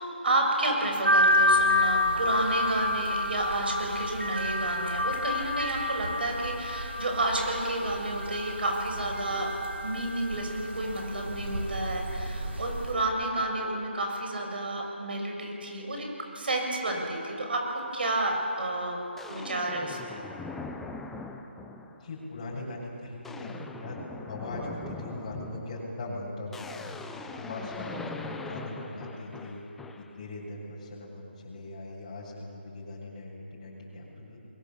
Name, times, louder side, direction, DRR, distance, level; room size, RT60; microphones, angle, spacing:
voice 1, 0.2-9.5 9.8-16.1 16.3-19.0 19.3-20.2, right 2 dB, 55° right, 1 dB, 6.7 m, -30 dB
sound 1, 1.0-12.9, left 1 dB, 70° right, 5.1 m, -29 dB
sound 2, 18.3-18.5 19.2-22.1 22.5-22.8 23.1-30.2, left 3 dB, 5° left, 0.8 m, -41 dB
voice 2, 21.9-24.0 24.3-26.7 27.1-29.6 30.0-34.4, left 2 dB, 30° left, -5 dB, 6.7 m, -40 dB
29.5 x 22.5 x 7.2 m, 2.9 s
figure-of-eight pair, 160°, 6 cm